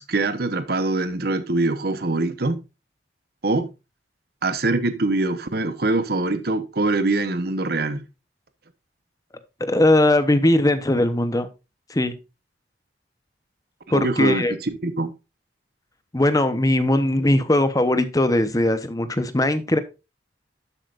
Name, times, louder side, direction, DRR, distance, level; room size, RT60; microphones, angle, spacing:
voice 1, 0.0-2.6 3.4-3.7 4.4-8.0 13.9-15.1, right 2 dB, 60° right, 1.0 m, -23 dB
voice 2, 9.6-11.5 11.9-12.1 13.9-14.5 16.1-19.8, left 1 dB, 20° left, 0.9 m, -19 dB
11.5 x 7.7 x 2.5 m
head